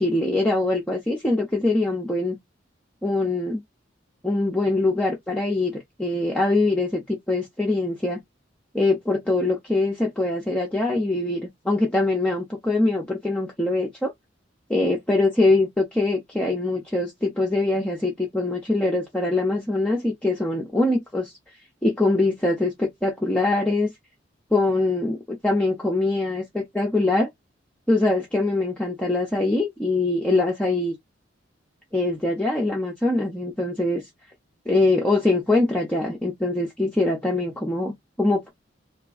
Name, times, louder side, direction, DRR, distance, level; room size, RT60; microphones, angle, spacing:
voice 1, 0.0-2.4 3.0-3.6 4.2-8.2 8.7-14.1 14.7-21.3 21.8-23.9 24.5-27.3 27.9-30.9 31.9-34.0 34.7-37.9 38.2-38.5, left 2 dB, 5° left, 0.8 m, -23 dB
2.9 x 2.5 x 3.5 m
head